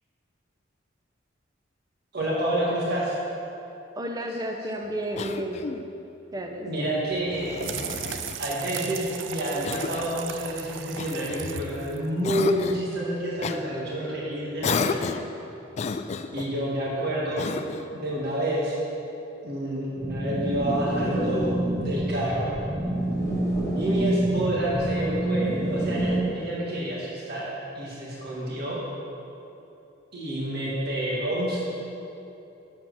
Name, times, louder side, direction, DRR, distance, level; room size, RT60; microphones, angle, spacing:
voice 1, 2.1-3.2 6.6-7.6 8.4-15.1 16.3-17.5 17.9-18.7 19.4-22.5 23.7-27.5 27.7-28.8 30.1-31.6, right 1 dB, 60° right, -5 dB, 1.6 m, -29 dB
voice 2, 4.0-5.7 6.3-6.7, right 1 dB, 20° right, 3 dB, 0.6 m, -31 dB
Cough, 5.1-5.9 7.3-8.4 9.6-10.2 11.0-11.8 12.2-12.9 13.4-13.6 14.6-15.3 15.7-16.5 17.4-17.9, left 4 dB, 35° left, 0.3 m, -31 dB
sound 1, 7.1-12.7, right 10 dB, 75° right, 0.4 m, -37 dB
sound 2, 20.0-26.2, right 1 dB, 15° left, 1.7 m, -27 dB
7.5 x 7.1 x 6.2 m, 2.9 s
head